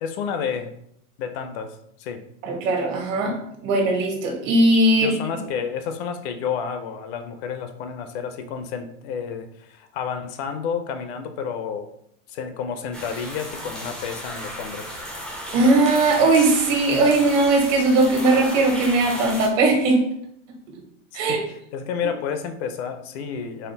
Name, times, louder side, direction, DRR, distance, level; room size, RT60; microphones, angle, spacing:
voice 1, 0.0-0.7 1.2-2.2 5.0-11.9 12.3-15.0 21.1-23.7, left 7 dB, 55° left, 8 dB, 0.5 m, -30 dB
voice 2, 2.4-3.3 3.6-5.1 15.5-20.0 21.1-21.4, right 2 dB, 80° right, 1 dB, 1.4 m, -19 dB
sound 1, 12.9-19.5, equal, ahead, 0.3 m, -34 dB
4.2 x 2.1 x 3.9 m, 0.73 s
supercardioid pair, 155°, 38 cm